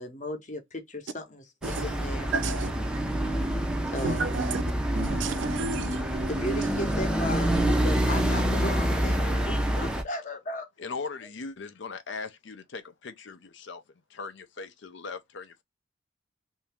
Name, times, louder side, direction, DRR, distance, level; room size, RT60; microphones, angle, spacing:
voice 1, 0.0-2.3 3.9-4.3 6.3-10.7, left 1 dB, 40° left, 0.8 m, -36 dB
sound 1, 1.6-10.0, right 1 dB, 5° right, 0.5 m, -27 dB
voice 2, 2.3-2.7 4.0-4.6 4.9-6.3 7.7-7.8, right 5 dB, 65° right, 0.4 m, -32 dB
voice 3, 10.8-13.8 14.1-15.6, left 4 dB, 60° left, 0.5 m, -39 dB
2.8 x 2.7 x 3.4 m
head